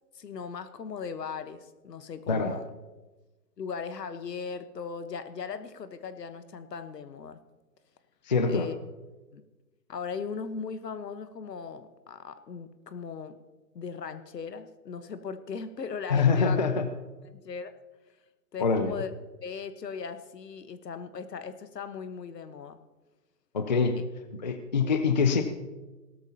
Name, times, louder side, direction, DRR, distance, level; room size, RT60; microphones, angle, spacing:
voice 1, 0.1-2.7 3.6-7.4 8.5-8.8 9.3-9.4 9.9-13.4 13.7-16.6 17.3-17.7 18.5-19.1 19.4-22.8 24.8-24.9, left 5 dB, 75° left, 11 dB, 1.3 m, -38 dB
voice 2, 8.3-8.7 16.1-16.9 18.6-19.0 23.5-24.0 24.4-25.4, left 5 dB, 30° left, 9 dB, 0.5 m, -24 dB
17.5 x 13.0 x 2.9 m, 1.2 s
hypercardioid pair, 150°, 49 cm